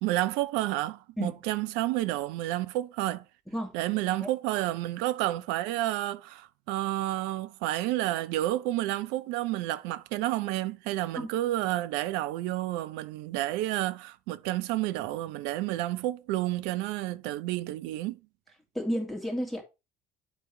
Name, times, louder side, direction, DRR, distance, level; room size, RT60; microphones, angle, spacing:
voice 1, 0.0-3.2 3.7-18.2, right 15 dB, 65° right, 0.5 m, -30 dB
voice 2, 18.7-19.6, equal, ahead, 2.7 m, -31 dB
10.0 x 4.5 x 3.2 m
figure-of-eight pair, 55°, 19 cm